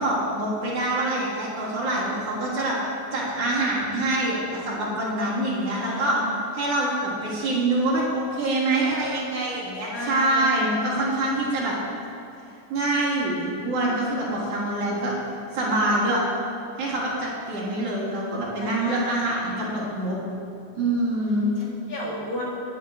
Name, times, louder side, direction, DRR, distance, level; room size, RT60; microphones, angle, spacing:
voice 1, 0.0-6.2 6.5-11.8 12.7-15.1 15.5-16.2 16.8-20.2 20.8-21.5, right 1 dB, 50° right, -8 dB, 4.5 m, -25 dB
voice 2, 5.5-6.2 9.9-10.8 18.6-19.4 21.6-22.4, equal, 50° left, -5 dB, 3.5 m, -33 dB
19.5 x 11.0 x 3.9 m, 2.7 s
omnidirectional pair, 4.3 m